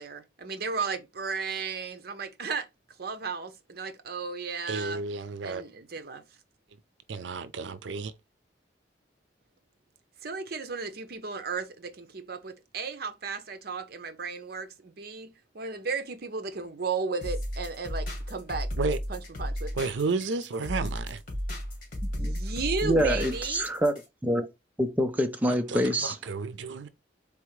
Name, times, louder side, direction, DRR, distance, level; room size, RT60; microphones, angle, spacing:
voice 1, 0.0-2.7 3.0-5.0 5.4-6.2 10.2-18.7 19.1-19.9 22.2-23.7, right 4 dB, 55° right, 0.7 m, -34 dB
voice 2, 4.7-5.6 7.1-8.1 18.8-19.0 19.7-21.2 25.7-26.9, right 4 dB, 85° right, 0.5 m, -32 dB
sound 1, 17.2-24.1, equal, 50° left, 2.3 m, -34 dB
voice 3, 22.8-24.5 24.8-26.2, equal, 10° right, 0.4 m, -26 dB
4.2 x 3.5 x 3.1 m
head